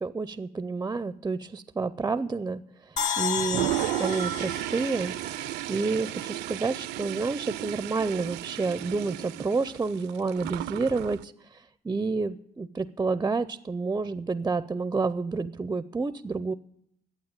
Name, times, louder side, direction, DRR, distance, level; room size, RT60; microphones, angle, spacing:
voice 1, 0.0-2.6 3.2-3.7 4.0-5.1 5.7-11.3 11.8-16.5, right 4 dB, 15° right, 14 dB, 0.4 m, -29 dB
sound 1, 3.0-6.3, left 7 dB, 45° left, 1.7 m, -33 dB
Toilet flush, 3.4-11.2, right 16 dB, 85° right, 0.4 m, -34 dB
11.5 x 8.5 x 8.8 m, 0.71 s
cardioid pair, 110°, 17 cm